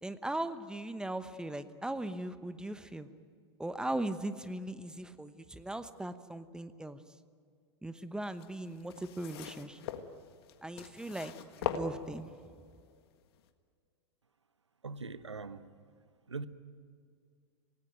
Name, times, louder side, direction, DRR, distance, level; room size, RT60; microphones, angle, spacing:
voice 1, 0.0-3.1 3.6-7.0 7.8-9.8 10.6-12.6, right 1 dB, 5° right, 1.0 m, -39 dB
sound 1, 8.3-12.5 13.3-13.4, left 9 dB, 60° left, 1.7 m, -40 dB
voice 2, 14.8-15.7 16.3-16.5, right 4 dB, 90° right, 1.0 m, -41 dB
26.0 x 18.5 x 9.3 m
hypercardioid pair, 95°, 14 cm